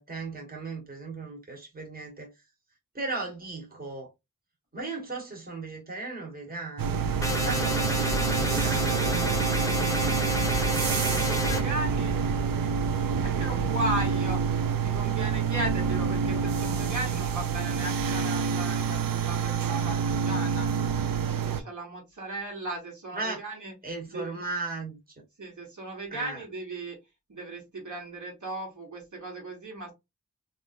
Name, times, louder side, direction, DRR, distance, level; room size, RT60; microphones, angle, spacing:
voice 1, 0.0-2.3 2.9-4.1 4.7-9.1 23.1-23.4 23.8-25.0 26.1-26.4, right 3 dB, 25° right, 1.4 m, -36 dB
sound 1, 6.8-21.6, right 6 dB, 85° right, 0.5 m, -27 dB
sound 2, 7.2-11.6, equal, 10° left, 0.9 m, -30 dB
voice 2, 10.8-12.4 13.2-20.7 21.3-23.7 24.1-24.4 25.4-27.0 27.3-29.9, right 1 dB, 60° right, 1.5 m, -36 dB
3.5 x 2.6 x 2.5 m
wide cardioid pair, 75°, 33 cm